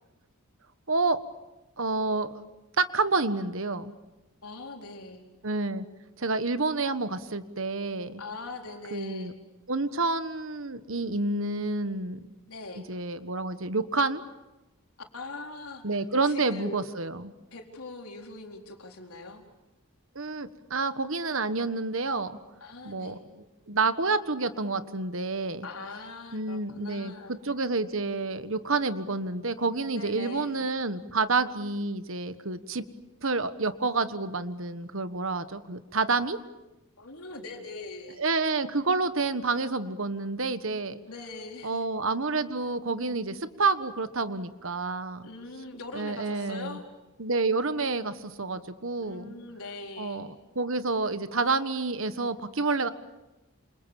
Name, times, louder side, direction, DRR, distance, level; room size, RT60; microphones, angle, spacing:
voice 1, 0.9-1.2 1.8-2.3 2.8-3.9 5.4-5.8 6.2-8.2 8.9-9.3 9.7-12.3 12.9-14.2 15.8-17.3 20.1-22.4 22.8-25.7 26.3-32.8 33.2-36.4 38.2-41.0 41.6-45.3 45.9-46.8 47.2-49.3 50.0-52.9, right 3 dB, 60° right, 11 dB, 1.4 m, -29 dB
voice 2, 4.4-5.2 8.2-9.4 12.5-12.8 15.1-15.8 16.3-16.8 17.5-19.4 22.6-23.2 25.6-27.4 29.9-30.7 37.0-38.2 41.1-41.8 45.2-46.9 49.0-50.3, left 3 dB, 75° left, 2 dB, 4.3 m, -42 dB
28.5 x 27.5 x 7.1 m, 1.0 s
head